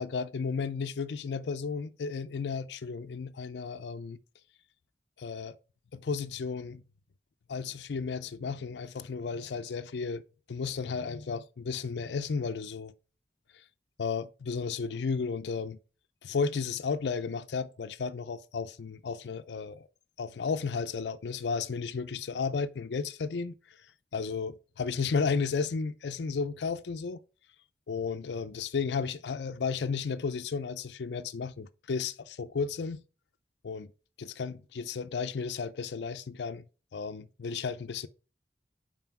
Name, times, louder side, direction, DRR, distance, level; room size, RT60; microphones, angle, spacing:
voice 1, 0.0-4.2 5.2-5.6 5.9-6.8 7.5-10.2 10.5-12.9 14.0-15.8 16.2-19.9 20.2-23.9 24.1-27.2 27.9-33.0 33.6-33.9 34.2-36.6 36.9-38.1, left 5 dB, 85° left, 0.4 m, -33 dB
5.6 x 4.9 x 5.8 m
head